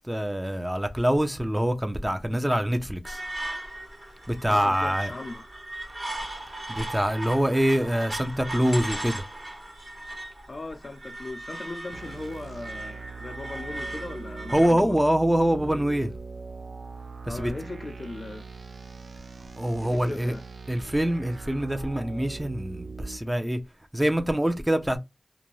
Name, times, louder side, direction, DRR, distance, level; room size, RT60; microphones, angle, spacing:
voice 1, 0.1-3.2 4.3-5.1 6.7-9.2 14.5-16.1 17.3-17.5 19.6-20.3 20.7-23.6 23.9-25.0, equal, 10° right, 0.6 m, -25 dB
sound 1, 3.0-14.7, right 1 dB, 40° right, 1.3 m, -38 dB
voice 2, 4.5-5.4 10.5-15.0 17.3-18.5 19.8-20.4, left 2 dB, 55° left, 0.5 m, -38 dB
sound 2, 11.9-23.2, right 4 dB, 85° right, 0.4 m, -41 dB
2.5 x 2.2 x 3.0 m
cardioid pair, 45°, 0 cm